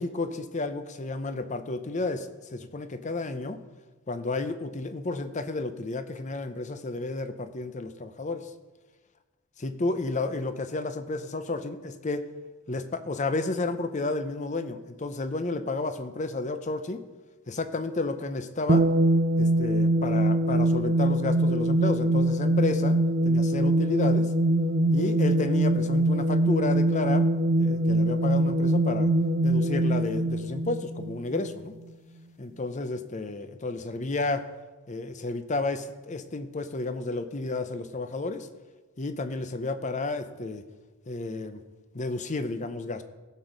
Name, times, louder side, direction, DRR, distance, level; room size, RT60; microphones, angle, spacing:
voice 1, 0.0-3.6 4.1-8.5 9.6-12.2 12.7-17.0 17.5-18.9 19.4-23.0 23.2-24.3 24.9-27.3 27.6-29.1 29.4-31.7 32.4-34.5 34.9-38.5 39.0-40.6 41.1-41.6 41.9-43.0, left 3 dB, 35° left, 11 dB, 0.6 m, -31 dB
sound 1, 18.7-31.5, right 1 dB, 45° right, 0.6 m, -23 dB
15.5 x 6.3 x 5.2 m, 1.3 s
head